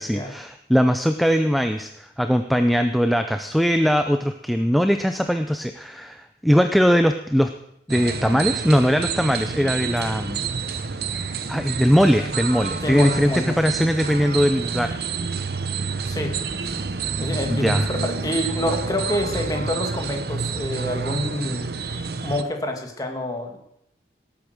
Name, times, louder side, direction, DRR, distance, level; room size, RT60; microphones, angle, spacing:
voice 1, 0.0-7.5 7.9-10.4 11.5-14.9 17.5-17.9, equal, ahead, 7 dB, 0.5 m, -20 dB
sound 1, 7.9-22.4, right 5 dB, 60° right, 0.9 m, -28 dB
voice 2, 12.8-13.6 16.1-16.3 17.2-21.7 22.2-23.6, left 1 dB, 20° left, 3 dB, 2.0 m, -27 dB
18.5 x 8.5 x 6.5 m, 0.76 s
head